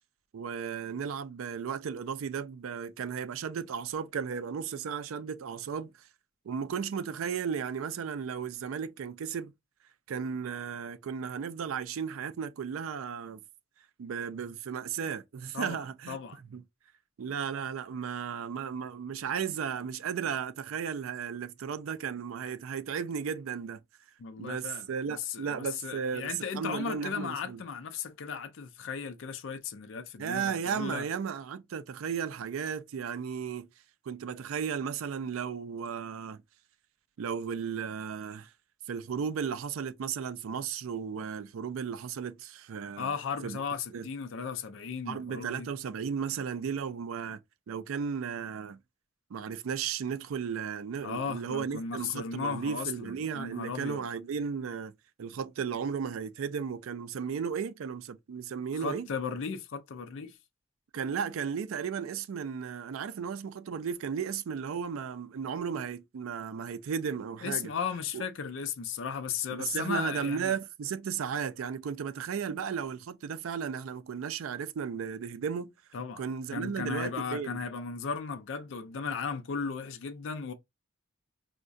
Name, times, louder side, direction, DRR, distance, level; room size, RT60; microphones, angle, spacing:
voice 1, 0.3-5.9 6.5-9.5 10.1-13.4 14.0-16.2 16.5-16.6 17.2-23.8 24.4-27.6 30.2-33.7 34.1-36.4 37.2-38.5 38.9-43.1 43.4-43.6 43.9-44.1 45.1-47.4 47.7-48.8 49.3-54.9 55.2-59.1 60.9-67.7 68.1-68.2 69.6-75.7 76.2-77.6, right 7 dB, 80° right, 0.4 m, -35 dB
voice 2, 15.5-16.4 24.2-31.0 43.0-45.7 51.0-54.0 58.7-60.4 67.4-70.5 75.9-76.2 76.5-80.5, left 6 dB, 65° left, 0.4 m, -36 dB
4.5 x 2.1 x 2.5 m
head